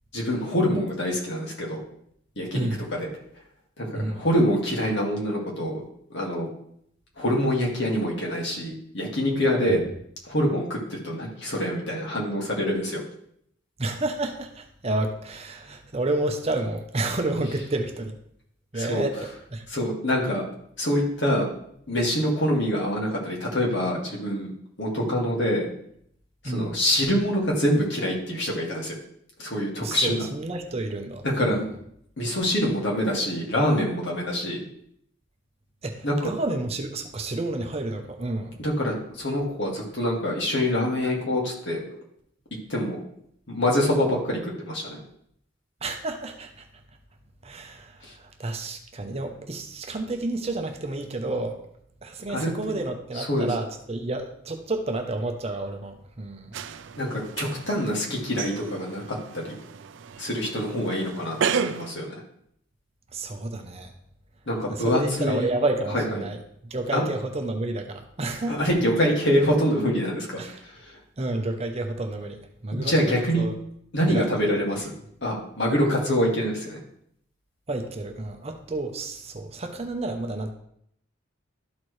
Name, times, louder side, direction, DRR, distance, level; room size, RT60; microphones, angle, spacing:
voice 1, 0.1-1.8 2.4-3.1 3.8-5.8 6.1-6.5 7.2-9.8 10.2-13.0 18.7-19.0 19.7-20.4 20.8-21.5 21.9-24.5 24.8-25.7 26.4-29.0 29.4-30.2 31.2-31.7 32.2-34.6 36.0-36.3 38.6-42.0 42.7-43.0 43.5-45.0 48.0-48.1 52.3-52.5 53.2-53.5 57.0-59.5 60.2-62.2 64.5-65.5 65.9-66.0 66.9-67.0 68.5-71.0 72.7-73.5 73.9-74.9 75.2-76.8, equal, 60° left, -2 dB, 2.0 m, -25 dB
voice 2, 2.5-2.9 3.9-4.2 9.7-9.8 13.8-18.2 18.7-19.7 26.4-26.8 29.8-31.6 35.8-38.6 45.8-46.6 47.4-51.6 52.0-56.6 63.1-63.9 64.7-68.6 70.4-70.6 71.2-73.5 74.1-74.3 77.7-80.5, right 2 dB, 30° right, 5 dB, 0.7 m, -30 dB
sound 1, 56.5-61.9, right 6 dB, 65° right, 0.4 m, -33 dB
12.5 x 4.5 x 3.2 m, 0.70 s
head